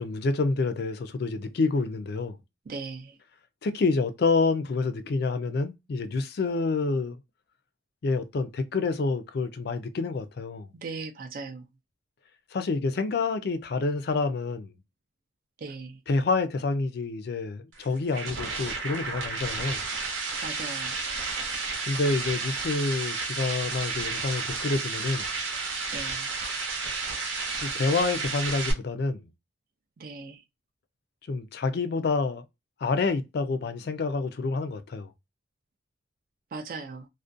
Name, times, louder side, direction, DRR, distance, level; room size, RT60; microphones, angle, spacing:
voice 1, 0.0-2.4 3.6-7.2 8.0-10.7 12.5-14.7 16.1-19.8 21.9-25.3 27.6-29.2 31.3-32.4 32.8-35.1, left 3 dB, 50° left, 0.3 m, -28 dB
voice 2, 2.7-3.1 10.7-11.6 15.6-16.0 20.4-21.0 25.9-26.3 30.0-30.4 36.5-37.1, right 4 dB, 45° right, 0.3 m, -38 dB
sound 1, 17.7-28.7, right 4 dB, 80° right, 0.7 m, -32 dB
2.4 x 2.1 x 2.5 m
head